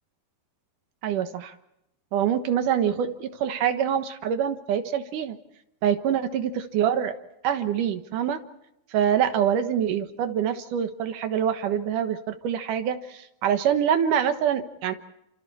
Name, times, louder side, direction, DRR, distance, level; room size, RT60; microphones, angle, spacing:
voice 1, 1.0-1.5 2.1-5.4 5.8-7.1 7.4-8.4 8.9-14.9, right 9 dB, 65° right, 8 dB, 2.5 m, -25 dB
29.5 x 27.0 x 4.3 m, 0.83 s
omnidirectional pair, 4.6 m